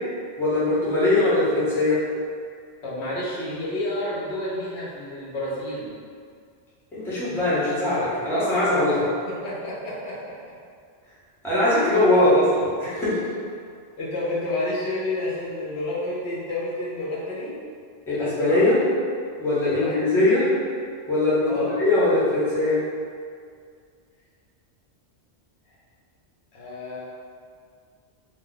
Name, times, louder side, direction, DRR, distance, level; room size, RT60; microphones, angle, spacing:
voice 1, 0.4-2.0 6.9-9.1 11.4-13.2 18.1-18.8 19.4-20.5 21.1-22.8, left 2 dB, 5° left, -11 dB, 0.7 m, -21 dB
voice 2, 2.8-5.9 8.9-9.0 9.2-10.3 12.2-12.4 14.0-17.6 19.6-19.9 21.4-21.7 26.5-27.0, left 1 dB, 75° left, -7 dB, 1.0 m, -30 dB
2.3 x 2.2 x 3.8 m, 2.2 s
omnidirectional pair, 1.1 m